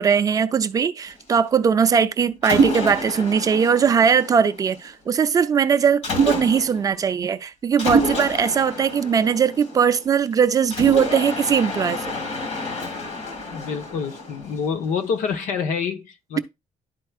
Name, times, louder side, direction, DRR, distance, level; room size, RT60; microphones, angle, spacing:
voice 1, 0.0-12.2, right 7 dB, 30° right, 0.4 m, -20 dB
Mechanisms, 2.4-4.9 6.0-6.9 7.8-10.1 10.7-14.9, right 2 dB, 60° left, 1.9 m, -26 dB
voice 2, 13.5-16.4, left 6 dB, 85° left, 1.0 m, -27 dB
11.5 x 4.5 x 2.4 m
cardioid pair, 170°, 13 cm